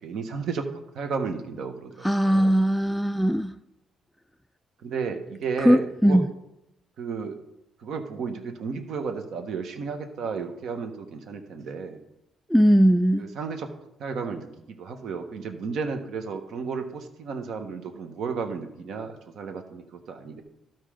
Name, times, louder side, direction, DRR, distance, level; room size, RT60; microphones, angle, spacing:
voice 1, 0.0-2.5 4.8-6.2 7.0-7.4 7.8-12.0 13.2-13.7 14.0-14.5 14.8-20.4, right 5 dB, 70° right, 6 dB, 1.2 m, -33 dB
voice 2, 2.0-3.6 5.6-6.3 12.5-13.3, equal, ahead, 9 dB, 0.3 m, -20 dB
12.5 x 4.5 x 5.0 m, 0.85 s
cardioid pair, 90°, 0 cm